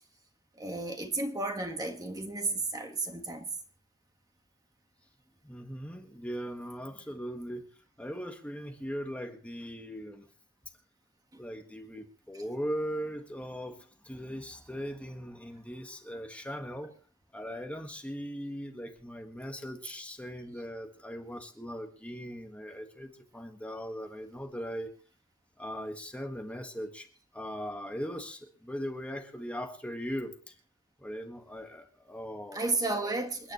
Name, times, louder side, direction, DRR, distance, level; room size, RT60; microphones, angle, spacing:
voice 1, 0.6-3.5 32.5-33.5, right 2 dB, 15° right, 1.5 m, -33 dB
voice 2, 5.4-7.6 8.0-10.2 11.4-16.9 17.3-24.9 25.6-27.1 27.3-30.5 31.0-32.8, equal, 5° left, 1.5 m, -39 dB
28.5 x 9.9 x 3.1 m
head